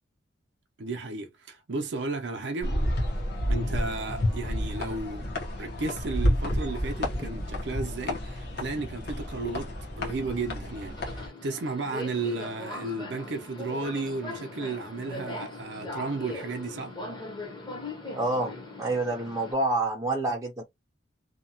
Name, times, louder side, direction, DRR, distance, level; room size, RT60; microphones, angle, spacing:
voice 1, 0.8-2.8 3.5-5.3 5.6-16.9, right 3 dB, 60° right, 0.6 m, -34 dB
sound 1, 2.6-11.3, equal, 50° left, 0.8 m, -30 dB
Subway metro underground, 10.0-19.5, left 2 dB, 20° left, 0.8 m, -40 dB
voice 2, 18.1-20.6, right 2 dB, 15° right, 0.5 m, -28 dB
2.8 x 2.2 x 2.7 m
head